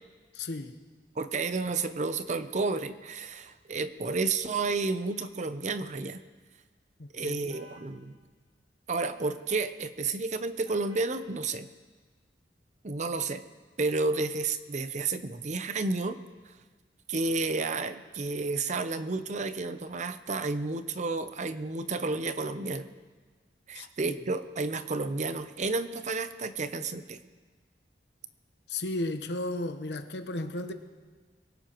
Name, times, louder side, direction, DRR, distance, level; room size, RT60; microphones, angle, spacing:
voice 1, 0.3-0.8 7.0-7.5 23.7-24.2 28.7-30.7, left 2 dB, 70° left, 8 dB, 1.0 m, -34 dB
voice 2, 1.2-6.2 7.1-8.1 8.9-11.7 12.8-13.4 13.8-16.2 17.1-22.9 23.7-27.2, right 3 dB, 40° right, 10 dB, 0.6 m, -31 dB
sound 1, 7.5-7.9 9.2-9.6 10.6-11.2, right 1 dB, 25° right, 3.0 m, -53 dB
23.5 x 17.0 x 3.0 m, 1.4 s
head